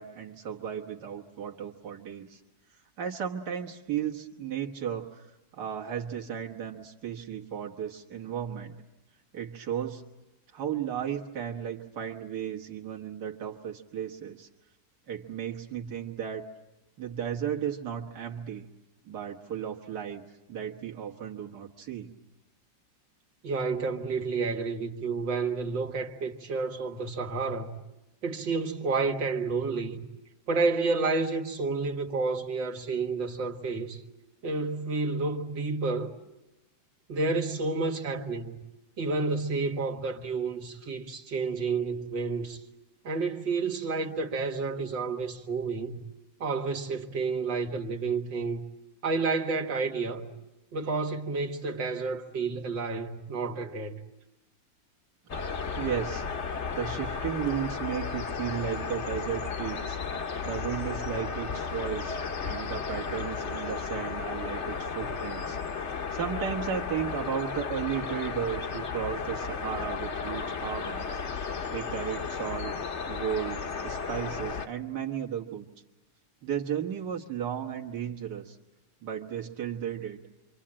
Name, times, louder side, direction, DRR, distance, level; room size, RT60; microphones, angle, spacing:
voice 1, 0.0-2.4 3.0-5.3 5.5-8.8 9.3-10.0 10.5-14.5 15.1-16.5 17.0-18.6 19.1-20.2 20.5-22.1 55.8-56.3 56.7-60.0 60.4-62.2 62.4-65.6 66.1-71.2 71.7-72.7 73.1-75.7 76.4-78.6 79.0-80.2, right 9 dB, 65° right, 1.9 m, -34 dB
voice 2, 23.4-27.8 28.2-30.0 30.5-34.0 34.4-36.2 37.1-38.6 39.0-42.6 43.0-46.0 46.4-48.6 49.0-50.3 50.7-54.0, right 4 dB, 80° right, 2.3 m, -30 dB
sound 1, 55.3-74.7, left 5 dB, 45° left, 1.2 m, -34 dB
27.0 x 25.0 x 8.7 m
omnidirectional pair, 2.0 m